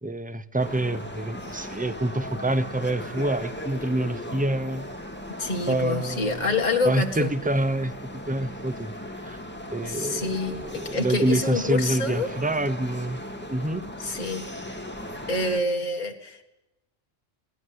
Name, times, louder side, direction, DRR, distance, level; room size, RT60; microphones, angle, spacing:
voice 1, 0.0-4.9 5.7-6.5 6.8-7.9 8.3-8.9 9.2-9.4 9.7-13.2 13.5-13.8, right 1 dB, 10° right, 14 dB, 0.5 m, -27 dB
fiumicino airport, 0.6-15.6, left 1 dB, 10° left, 2.0 m, -38 dB
voice 2, 5.4-7.3 9.8-12.3 14.0-14.5 15.3-16.4, left 3 dB, 35° left, 3 dB, 2.0 m, -27 dB
22.5 x 16.5 x 8.0 m, 0.95 s
omnidirectional pair, 1.3 m